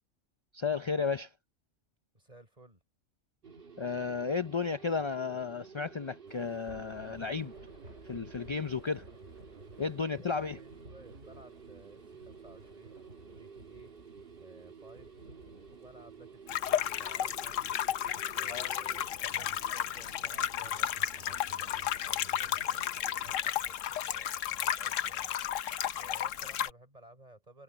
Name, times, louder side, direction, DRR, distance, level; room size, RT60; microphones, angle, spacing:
voice 1, 0.5-1.3 3.8-7.5 8.0-9.1 9.8-10.6 18.5-18.7, left 5 dB, 45° left, 0.4 m, -33 dB
voice 2, 2.1-2.8 10.3-13.0 13.3-13.9 14.4-15.2 15.7-17.6 18.4-27.6, right 2 dB, 30° right, 5.4 m, -57 dB
sound 1, 3.4-23.4, right 5 dB, 50° right, 1.6 m, -52 dB
Thunder / Rain, 6.3-20.3, right 1 dB, 75° right, 7.8 m, -56 dB
sound 2, 16.5-26.7, left 10 dB, 80° left, 1.1 m, -33 dB
omnidirectional pair, 1.3 m